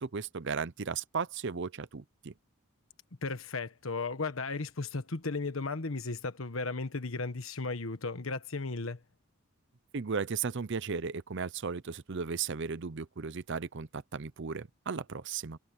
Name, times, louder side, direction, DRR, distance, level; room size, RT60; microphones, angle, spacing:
voice 1, 0.0-2.3 9.9-15.6, right 5 dB, 60° right, 0.7 m, -35 dB
voice 2, 3.2-9.0, left 3 dB, 75° left, 1.3 m, -35 dB
head